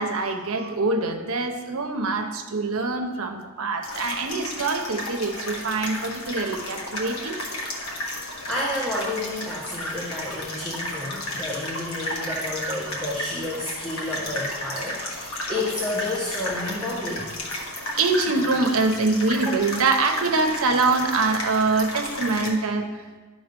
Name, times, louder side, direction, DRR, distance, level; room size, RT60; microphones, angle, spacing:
voice 1, 0.0-7.3 12.6-12.7 18.0-22.9, right 3 dB, 65° right, 5 dB, 0.8 m, -24 dB
sound 1, 3.8-22.5, left 1 dB, 75° left, 1.5 m, -33 dB
voice 2, 8.1-17.3 19.4-19.5, left 1 dB, 5° left, -6 dB, 1.1 m, -31 dB
11.0 x 3.9 x 5.2 m, 1.3 s
head